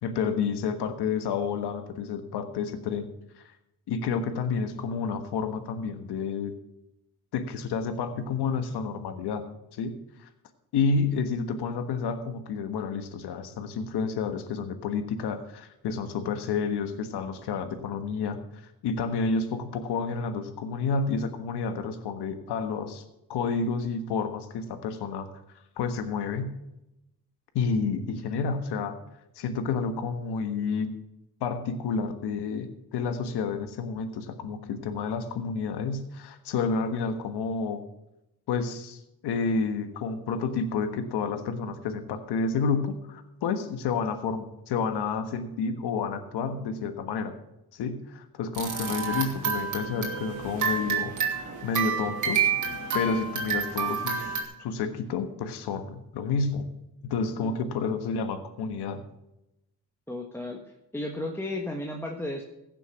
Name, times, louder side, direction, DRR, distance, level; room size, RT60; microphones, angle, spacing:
voice 1, 0.0-3.1 3.9-6.5 7.3-9.4 9.7-10.3 10.7-23.0 23.3-25.3 25.8-26.5 27.5-28.9 29.4-30.9 31.4-37.8 38.5-47.3 47.7-52.5 52.9-54.3 54.6-56.7 57.0-59.0, left 5 dB, 85° left, 8 dB, 1.4 m, -30 dB
sound 1, 48.5-54.4, right 6 dB, 50° right, 2.9 m, -29 dB
voice 2, 57.4-57.8 60.1-60.6 60.9-62.4, left 1 dB, 5° left, 0 dB, 1.5 m, -34 dB
16.0 x 7.0 x 5.8 m, 0.89 s
cardioid pair, 100°, 39 cm